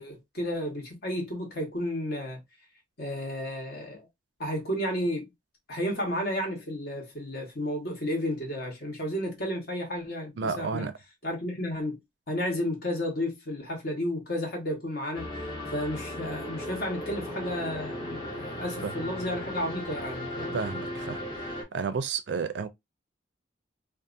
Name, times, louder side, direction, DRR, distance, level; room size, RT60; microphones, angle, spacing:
voice 1, 0.0-2.4 3.0-4.1 4.4-5.3 5.7-10.9 11.2-12.0 12.3-15.3 15.7-20.6, left 1 dB, 55° left, 1.2 m, -32 dB
voice 2, 10.4-10.9 18.8-18.9 20.5-21.2 21.5-22.7, right 5 dB, 65° right, 0.4 m, -31 dB
sound 1, 15.1-21.6, left 1 dB, 25° left, 0.9 m, -36 dB
2.7 x 2.4 x 2.4 m
head